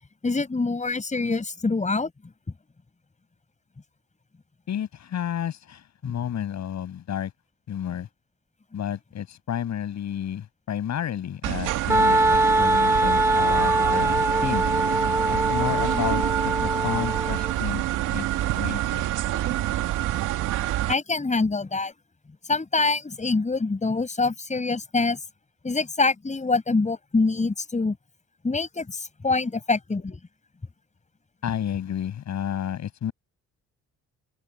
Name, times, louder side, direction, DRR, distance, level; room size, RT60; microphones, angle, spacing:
voice 1, 0.2-2.1 6.0-6.1 20.9-21.9 22.5-25.2 25.6-28.0 28.4-30.2, left 3 dB, 25° left, 6.3 m, -25 dB
voice 2, 4.7-7.3 7.7-8.1 8.7-14.6 15.3-17.8 18.1-18.2 18.5-19.0 31.4-33.1, left 9 dB, 65° left, 6.9 m, -31 dB
sound 1, 11.4-20.9, right 14 dB, 90° right, 2.5 m, -27 dB
Wind instrument woodwind instrument, 11.9-17.5, right 1 dB, 10° right, 1.9 m, -23 dB
open air
cardioid pair, 90°, 30 cm